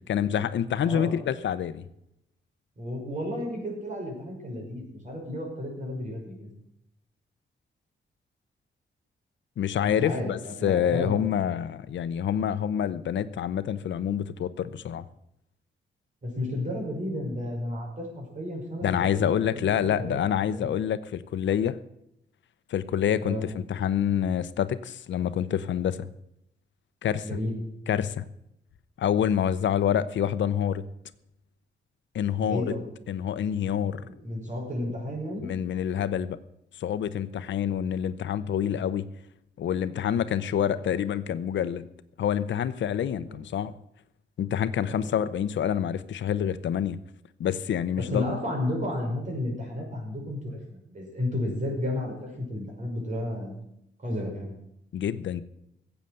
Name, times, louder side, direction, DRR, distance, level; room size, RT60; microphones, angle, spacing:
voice 1, 0.1-1.8 9.6-15.0 18.8-21.8 22.7-26.1 27.0-27.3 27.9-28.2 29.0-30.9 32.1-32.7 33.1-34.0 35.4-36.4 36.8-39.1 39.6-41.9 42.2-43.7 44.4-47.0 47.4-48.2 54.9-55.4, left 9 dB, 85° left, 14 dB, 0.7 m, -27 dB
voice 2, 0.8-1.2 2.8-6.5 9.8-11.2 16.2-20.7 23.2-23.4 27.2-27.5 32.3-32.8 34.0-35.5 43.2-43.4 44.9-45.0 48.0-53.5 54.0-54.6, left 1 dB, 40° right, 0 dB, 5.7 m, -33 dB
15.0 x 8.1 x 7.8 m, 0.80 s
wide cardioid pair, 130°, 19 cm